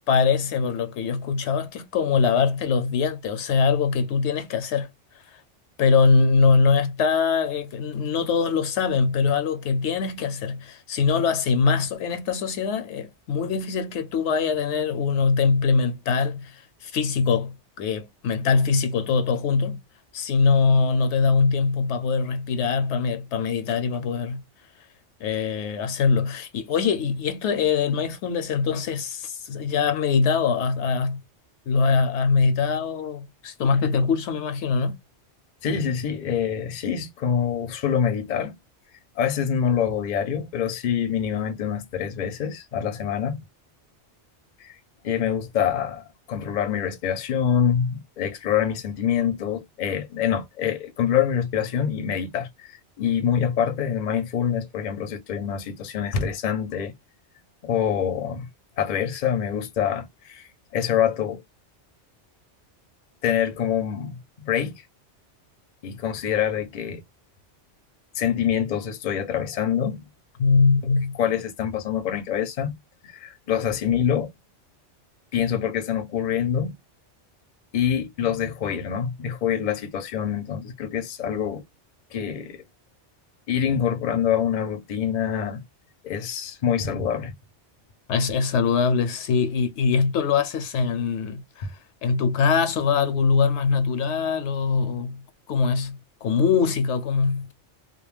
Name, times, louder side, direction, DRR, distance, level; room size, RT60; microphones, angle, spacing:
voice 1, 0.1-4.9 5.8-19.8 20.1-24.4 25.2-31.2 31.7-35.0 70.4-71.2 88.1-91.7 92.0-95.2 95.5-97.5, left 5 dB, 75° left, 0.9 m, -22 dB
voice 2, 35.6-38.6 39.2-43.4 44.6-44.8 45.0-56.9 57.6-58.5 58.8-61.4 63.2-64.8 65.8-67.0 68.1-70.1 71.2-72.7 73.1-74.3 75.3-76.8 77.7-81.6 82.1-82.6 83.5-85.6 86.0-87.3 91.6-91.7, left 8 dB, 50° left, 0.6 m, -25 dB
2.3 x 2.1 x 3.1 m
omnidirectional pair, 1.2 m